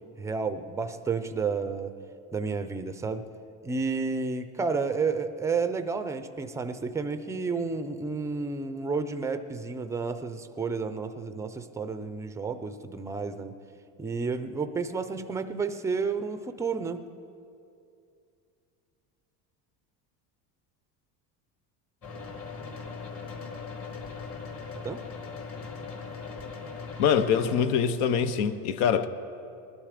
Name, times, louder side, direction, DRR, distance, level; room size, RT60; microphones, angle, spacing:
voice 1, 0.2-2.0 2.3-3.2 3.6-13.6 14.0-17.0 24.8-25.0, right 4 dB, 10° right, 9 dB, 0.4 m, -31 dB
sound 1, 22.0-27.7, left 5 dB, 35° left, 1.8 m, -39 dB
voice 2, 27.0-29.1, left 7 dB, 85° left, 12 dB, 0.9 m, -24 dB
20.5 x 12.0 x 5.0 m, 2.5 s
cardioid pair, 155°, 40 cm